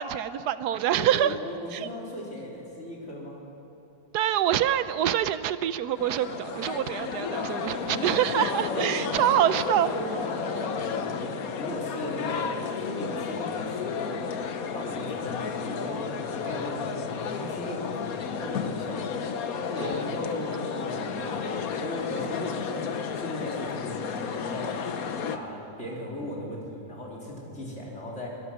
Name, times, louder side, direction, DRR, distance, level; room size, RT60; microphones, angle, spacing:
voice 1, 0.0-1.3 1.7-1.9 4.1-9.9 19.8-19.9, right 11 dB, 80° right, 13 dB, 1.2 m, -25 dB
voice 2, 1.0-3.4 7.8-8.1 8.6-9.4 9.9-14.3 14.7-19.3 19.7-22.9 23.2-24.1 24.4-24.8 25.3-28.3, equal, 45° left, -3 dB, 4.2 m, -37 dB
sound 1, 6.0-25.4, left 6 dB, 65° left, 1.4 m, -32 dB
23.5 x 19.5 x 6.3 m, 2.9 s
omnidirectional pair, 1.7 m